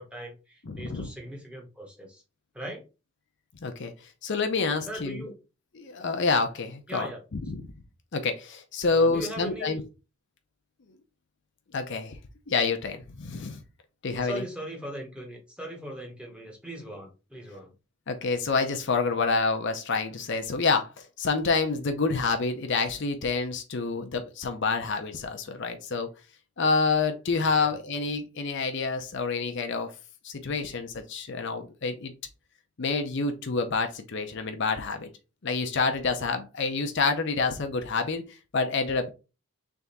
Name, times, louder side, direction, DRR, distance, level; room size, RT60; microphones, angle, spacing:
voice 1, 0.0-2.2 2.5-2.9 4.8-5.3 6.9-7.2 8.9-9.8 14.2-17.7 27.4-27.7, right 1 dB, 5° right, 1 dB, 1.0 m, -39 dB
voice 2, 0.7-1.1 3.6-3.9 4.2-5.2 5.8-7.1 7.3-7.6 8.1-9.8 11.7-12.2 12.5-13.6 14.0-14.4 18.1-26.1 26.6-29.9 30.2-32.1 32.8-35.1 35.4-39.1, left 4 dB, 55° left, 6 dB, 0.6 m, -28 dB
3.5 x 3.4 x 4.0 m, 0.30 s
head